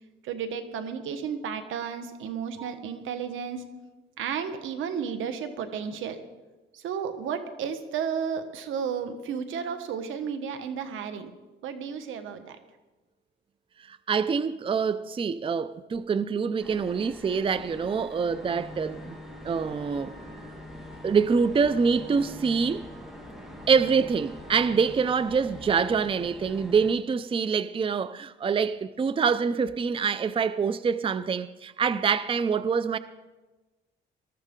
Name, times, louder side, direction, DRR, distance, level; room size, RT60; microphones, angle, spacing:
voice 1, 0.2-3.6 4.2-6.2 6.7-11.3 11.6-12.6, right 7 dB, 85° right, 1.4 m, -33 dB
voice 2, 13.9-19.2 19.4-20.1 21.0-22.9 23.7-33.0, right 5 dB, 25° right, 0.5 m, -25 dB
sound 1, 16.6-27.0, equal, ahead, 1.6 m, -45 dB
sound 2, 18.3-24.9, left 1 dB, 50° right, 6.1 m, -46 dB
20.0 x 13.5 x 3.8 m
cardioid pair, 90°, 20 cm